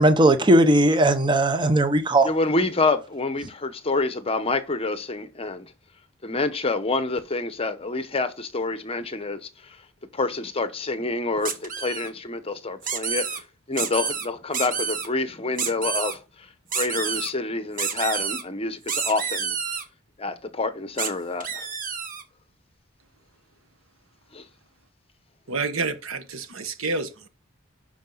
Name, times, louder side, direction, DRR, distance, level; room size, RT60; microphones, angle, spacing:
voice 1, 0.0-2.3, right 1 dB, 20° right, 0.8 m, -18 dB
voice 2, 2.2-5.7 6.2-9.4 10.1-13.4 13.7-16.2 16.7-19.5 20.2-21.6 24.3-24.4, left 3 dB, 30° left, 0.9 m, -27 dB
sound 1, 11.4-12.1 12.8-13.4 13.8-14.3 14.5-15.1 15.6-16.1 16.7-17.3 17.8-18.4 18.9-19.8 21.0-21.1 21.4-22.2, right 6 dB, 40° right, 1.2 m, -29 dB
voice 3, 25.5-27.3, right 3 dB, 75° right, 1.3 m, -29 dB
11.5 x 4.9 x 3.9 m
head